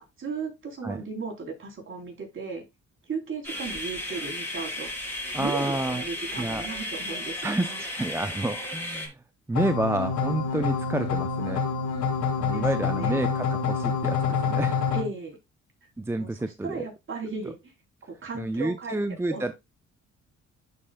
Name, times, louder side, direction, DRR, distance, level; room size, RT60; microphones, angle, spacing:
voice 1, 0.0-2.6 3.1-5.1 5.4-7.8 12.5-13.2 14.9-15.4 16.2-17.6 18.0-19.0 19.3-19.4, right 4 dB, 40° right, 3.6 m, -36 dB
sound 1, 3.4-9.1, left 1 dB, 5° left, 3.2 m, -34 dB
voice 2, 5.3-6.0 6.4-6.7 7.4-9.2 9.5-11.6 12.4-14.8 16.0-16.9 18.3-19.5, right 2 dB, 10° right, 0.6 m, -29 dB
sound 2, 9.6-15.0, left 5 dB, 70° left, 1.6 m, -27 dB
11.0 x 5.2 x 2.3 m
cardioid pair, 90°, 30 cm